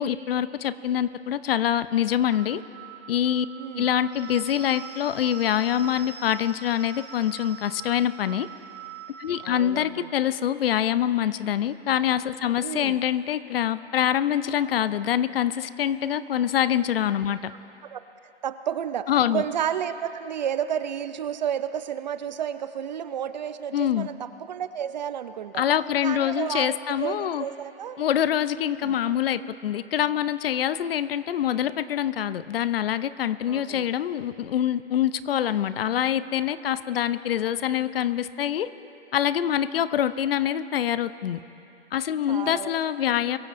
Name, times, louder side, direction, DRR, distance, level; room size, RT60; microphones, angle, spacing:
voice 1, 0.0-2.6 3.1-3.5 3.8-8.5 9.2-17.5 19.1-19.4 23.7-24.1 25.6-27.5 28.0-38.7 39.1-41.4 41.9-43.4, left 10 dB, 60° left, 15 dB, 0.6 m, -25 dB
sound 1, 2.3-9.9, right 9 dB, 85° right, 3.7 m, -43 dB
voice 2, 9.4-10.1 12.6-13.0 17.5-18.0 18.4-25.6 26.0-28.0 28.6-29.0 33.5-33.9 42.3-42.8 43.1-43.2, right 9 dB, 40° right, 12 dB, 0.5 m, -31 dB
23.0 x 15.0 x 2.6 m, 2.8 s
hypercardioid pair, 150°, 33 cm